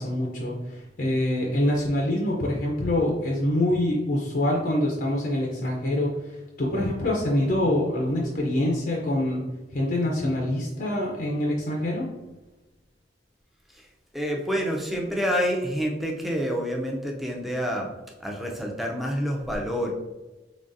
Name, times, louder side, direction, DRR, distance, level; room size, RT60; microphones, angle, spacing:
voice 1, 0.0-9.4 9.7-12.1, left 1 dB, 50° left, -2 dB, 0.5 m, -25 dB
voice 2, 14.1-17.9 18.2-19.9, equal, ahead, 0 dB, 0.5 m, -28 dB
3.8 x 3.2 x 2.5 m, 1.1 s
head